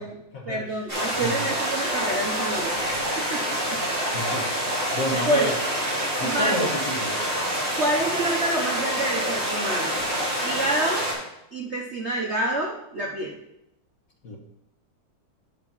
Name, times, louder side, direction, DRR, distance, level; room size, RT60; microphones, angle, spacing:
voice 1, 0.4-2.7 3.1-3.8 5.3-5.5 6.0-6.7 7.8-10.0 10.4-11.1 11.5-13.4, right 1 dB, 50° right, -1 dB, 0.8 m, -28 dB
sound 1, 0.9-11.1, equal, 25° right, 3.8 m, -27 dB
voice 2, 1.1-1.4 4.1-5.5 6.2-7.2 14.2-14.4, equal, 45° left, 1 dB, 1.5 m, -30 dB
9.8 x 4.7 x 5.5 m, 0.81 s
omnidirectional pair, 2.3 m